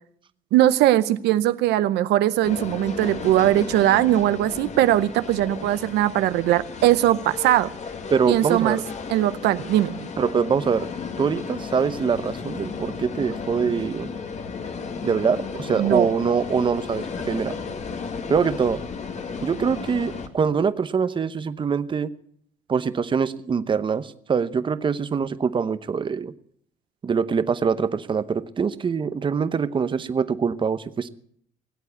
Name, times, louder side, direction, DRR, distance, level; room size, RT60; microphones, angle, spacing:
voice 1, 0.5-7.7 8.3-8.8 9.1-10.1 15.8-16.1, right 13 dB, 80° right, 13 dB, 0.7 m, -20 dB
sound 1, 2.4-20.3, left 5 dB, 45° left, 1.8 m, -34 dB
voice 2, 8.1-8.8 10.2-14.1 15.0-17.6 18.3-18.8 19.4-22.1 22.7-26.3 27.0-31.1, right 6 dB, 30° right, 13 dB, 0.8 m, -24 dB
19.5 x 8.3 x 8.2 m, 0.65 s
cardioid pair, 110°, 17 cm